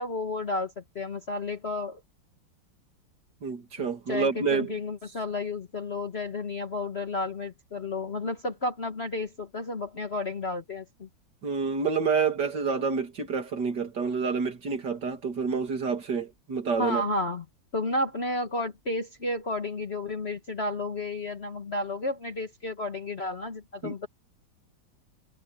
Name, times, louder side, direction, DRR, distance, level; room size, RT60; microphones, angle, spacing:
voice 1, 0.0-2.0 3.8-11.1 16.8-17.4 17.7-24.1, left 2 dB, 35° left, 1.5 m, -32 dB
voice 2, 3.4-4.7 11.4-17.0 23.8-23.9, right 5 dB, 60° right, 3.0 m, -28 dB
omnidirectional pair, 2.1 m